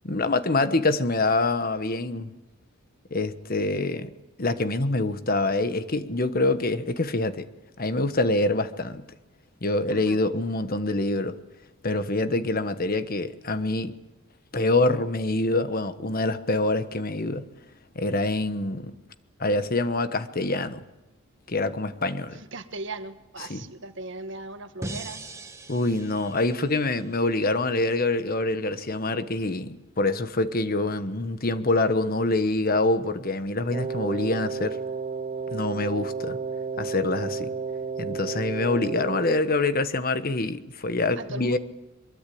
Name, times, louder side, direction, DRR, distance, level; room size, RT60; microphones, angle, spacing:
voice 1, 0.0-2.3 3.1-4.1 4.4-7.5 7.8-9.0 9.6-11.4 11.8-14.0 14.5-17.5 17.9-18.9 19.4-20.8 21.5-22.4 23.5-23.6 25.7-34.8 35.5-36.4 36.8-37.5 38.0-41.6, left 2 dB, 45° left, 1.3 m, -25 dB
voice 2, 9.9-10.2 22.3-25.2 41.2-41.6, right 2 dB, 60° right, 1.7 m, -38 dB
sound 1, 24.8-27.9, right 2 dB, 15° right, 1.8 m, -41 dB
Wind instrument woodwind instrument, 33.7-39.4, right 5 dB, 35° right, 0.8 m, -32 dB
24.0 x 22.0 x 8.6 m
head